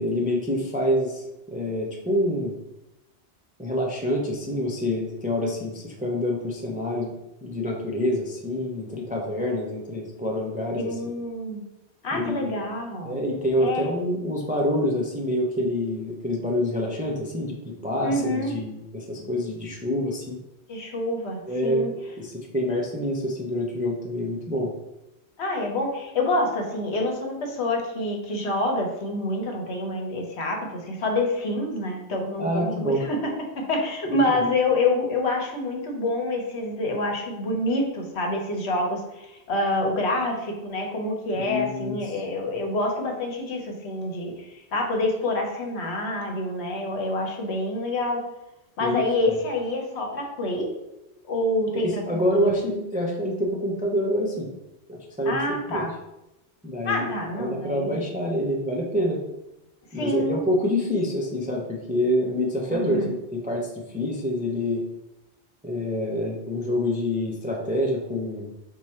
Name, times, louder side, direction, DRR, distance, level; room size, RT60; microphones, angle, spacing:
voice 1, 0.0-2.6 3.6-7.1 7.4-11.1 12.1-12.6 13.0-20.4 21.5-24.7 32.4-33.0 41.4-42.2 48.8-49.4 51.7-54.5 54.9-55.4 55.7-55.8 56.6-57.1 57.4-59.2 59.9-64.8 65.6-68.5, left 1 dB, 10° right, -1 dB, 0.4 m, -27 dB
voice 2, 10.8-11.6 12.0-13.3 13.6-13.9 18.0-18.6 20.7-21.9 25.4-48.2 48.8-50.7 51.3-52.5 55.3-55.9 56.8-58.0 59.9-60.4 62.7-63.1, left 2 dB, 75° left, 2 dB, 1.1 m, -27 dB
4.7 x 2.2 x 4.2 m, 0.93 s
omnidirectional pair, 1.1 m